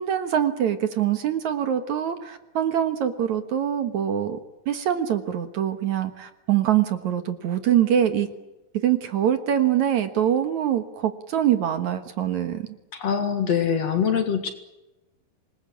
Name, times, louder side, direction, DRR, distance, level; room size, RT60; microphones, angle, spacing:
voice 1, 0.0-4.4 4.7-8.3 8.8-12.7, right 10 dB, 60° right, 9 dB, 2.5 m, -24 dB
voice 2, 12.9-14.5, left 7 dB, 50° left, 8 dB, 2.6 m, -23 dB
27.0 x 20.5 x 8.6 m, 1.0 s
omnidirectional pair, 4.2 m